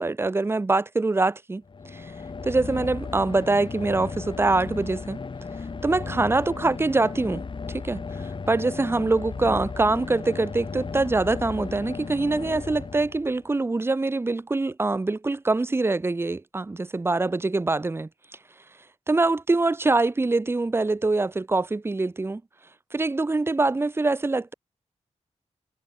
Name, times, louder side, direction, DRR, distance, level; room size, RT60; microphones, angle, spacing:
voice 1, 0.0-1.6 1.9-2.1 2.4-5.2 5.8-7.4 7.7-18.1 19.1-22.4 22.9-24.5, right 3 dB, 20° right, 0.6 m, -24 dB
sound 1, 1.7-13.5, left 4 dB, 40° left, 1.6 m, -35 dB
wide cardioid pair, 160°, 12 cm